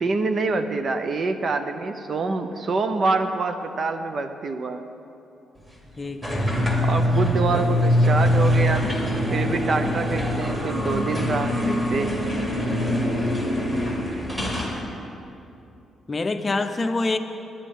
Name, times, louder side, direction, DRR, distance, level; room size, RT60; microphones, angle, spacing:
voice 1, 0.0-4.8 6.8-8.8 9.3-12.2 14.1-14.2, right 3 dB, 50° right, 8 dB, 0.7 m, -26 dB
voice 2, 6.0-6.6 16.1-17.2, left 3 dB, 30° left, 7 dB, 0.6 m, -26 dB
sound 1, 6.2-14.8, equal, 15° right, 2.2 m, -23 dB
sound 2, 9.3-13.2, right 1 dB, 75° right, 3.0 m, -38 dB
10.0 x 9.8 x 5.4 m, 2.7 s
cardioid pair, 90°, 0 cm